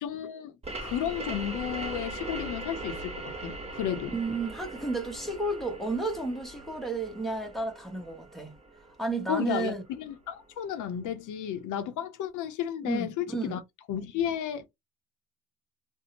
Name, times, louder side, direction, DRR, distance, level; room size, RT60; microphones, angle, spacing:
voice 1, 0.0-0.6 0.8-4.1 9.3-13.6 13.9-14.7, left 10 dB, 85° left, 0.6 m, -33 dB
sound 1, 0.6-10.0, right 2 dB, 20° right, 1.1 m, -40 dB
voice 2, 4.1-8.5 9.0-9.8 12.8-13.5, right 3 dB, ahead, 0.8 m, -32 dB
2.6 x 2.1 x 2.8 m
cardioid pair, 90°, 30 cm